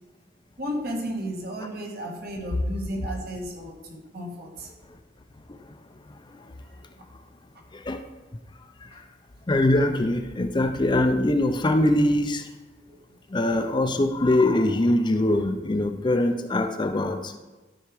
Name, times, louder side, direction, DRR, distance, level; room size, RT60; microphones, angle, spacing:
voice 1, 0.6-4.7 6.7-7.0 8.9-9.0 12.9-13.2, equal, 55° right, 2 dB, 1.5 m, -34 dB
voice 2, 7.7-8.0 8.8-9.0 9.5-12.5 13.3-17.4, left 1 dB, 25° left, 7 dB, 0.5 m, -23 dB
12.0 x 4.8 x 4.8 m, 1.2 s
head